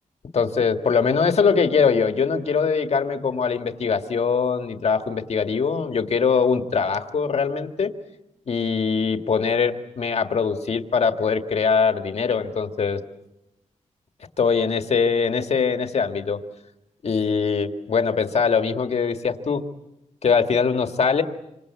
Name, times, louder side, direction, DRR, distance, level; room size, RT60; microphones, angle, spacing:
voice 1, 0.3-7.9 8.5-13.0 14.4-16.4 17.0-19.6 20.2-21.2, left 5 dB, 55° left, 7 dB, 1.8 m, -22 dB
27.5 x 26.0 x 8.2 m, 0.90 s
wide cardioid pair, 170°, 13 cm